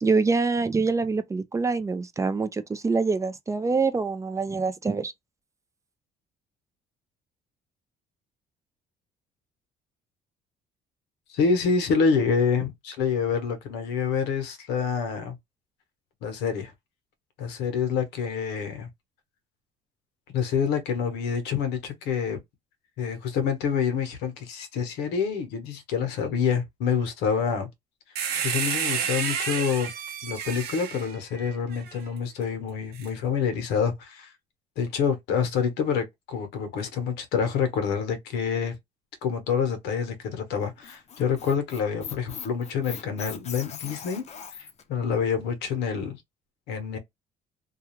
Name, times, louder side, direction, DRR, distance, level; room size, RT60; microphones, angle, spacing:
voice 1, 0.0-5.1, right 4 dB, 20° right, 0.3 m, -25 dB
voice 2, 11.3-15.4 16.2-16.7 17.4-18.9 20.3-22.4 23.0-27.7 28.4-29.9 30.2-34.3 34.8-38.8 39.2-44.2 44.6-46.2 46.7-47.0, left 6 dB, 90° left, 0.8 m, -27 dB
sound 1, 28.1-31.9 32.9-33.1, right 7 dB, 70° right, 0.7 m, -30 dB
Squeak, 40.6-44.8, left 7 dB, 40° left, 0.5 m, -40 dB
2.3 x 2.3 x 2.9 m
cardioid pair, 110°, 17 cm